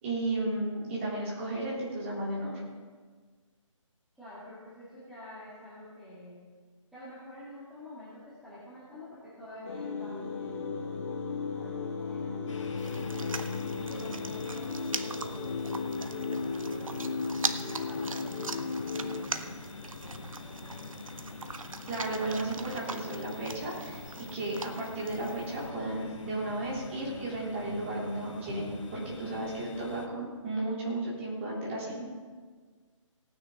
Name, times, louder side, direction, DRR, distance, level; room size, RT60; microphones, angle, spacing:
voice 1, 0.0-2.6 21.9-24.0 24.3-32.0, right 2 dB, 25° right, -6 dB, 3.4 m, -34 dB
voice 2, 4.1-6.4 6.9-13.4 13.8-16.9 17.7-19.5 20.0-21.0, left 1 dB, ahead, -13 dB, 2.0 m, -48 dB
sound 1, 9.6-19.2, left 4 dB, 30° left, 2.1 m, -35 dB
sound 2, 12.5-30.1, left 3 dB, 65° left, 1.6 m, -45 dB
sound 3, 12.8-25.7, right 4 dB, 80° right, 0.9 m, -41 dB
18.0 x 9.6 x 3.9 m, 1.5 s
hypercardioid pair, 160°, 17 cm